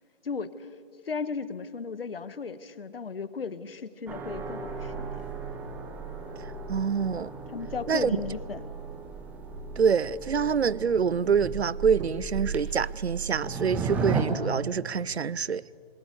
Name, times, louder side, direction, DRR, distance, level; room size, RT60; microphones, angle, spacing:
voice 1, 0.2-0.7 1.0-5.3 7.5-8.7, left 5 dB, 65° left, 1.4 m, -35 dB
sound 1, 4.1-14.2, right 4 dB, 5° right, 0.7 m, -35 dB
voice 2, 6.7-7.3 7.9-8.1 9.8-15.6, right 6 dB, 90° right, 0.6 m, -26 dB
26.5 x 21.0 x 8.3 m
figure-of-eight pair, 145°, 31 cm